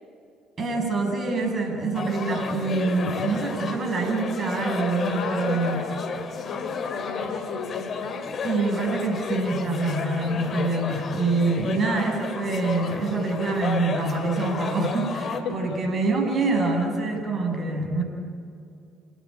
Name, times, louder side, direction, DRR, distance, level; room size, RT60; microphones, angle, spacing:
voice 1, 0.6-5.8 8.4-18.0, right 3 dB, 40° right, 2 dB, 7.5 m, -25 dB
sound 1, 1.9-15.4, left 5 dB, 45° left, 2.5 m, -32 dB
voice 2, 5.1-8.2 15.3-15.8, left 5 dB, 65° left, 8 dB, 3.3 m, -35 dB
28.0 x 18.0 x 8.9 m, 2.4 s
hypercardioid pair, 55°, 0 cm